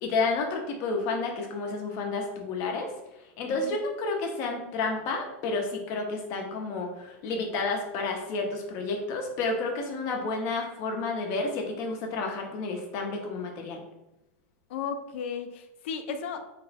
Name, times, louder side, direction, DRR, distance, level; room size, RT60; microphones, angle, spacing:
voice 1, 0.0-2.9 3.4-13.8, left 3 dB, 40° left, 2 dB, 0.7 m, -30 dB
voice 2, 3.4-3.8 14.7-16.4, left 6 dB, 65° left, 7 dB, 0.5 m, -35 dB
3.3 x 2.1 x 4.1 m, 0.93 s
supercardioid pair, 150°, 7 cm